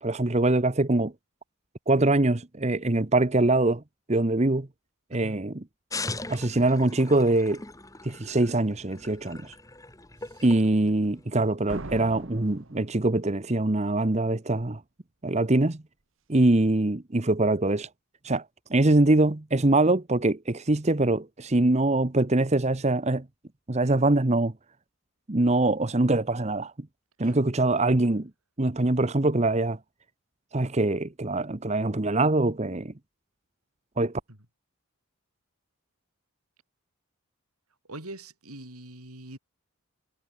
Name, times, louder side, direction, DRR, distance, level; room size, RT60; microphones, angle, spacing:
voice 1, 0.0-1.1 1.9-3.8 4.1-4.7 5.1-5.6 6.3-7.6 8.0-9.5 10.4-14.8 15.2-15.8 16.3-17.9 18.2-18.4 18.7-23.2 23.7-24.5 25.3-26.7 27.2-28.3 28.6-29.8 30.5-32.9 34.0-34.1, right 2 dB, 30° right, 1.0 m, -23 dB
sound 1, 5.9-11.5, left 3 dB, 15° left, 3.0 m, -40 dB
Slam, 11.7-13.6, right 2 dB, 60° right, 1.5 m, -40 dB
voice 2, 37.9-39.4, right 1 dB, 90° right, 7.8 m, -42 dB
head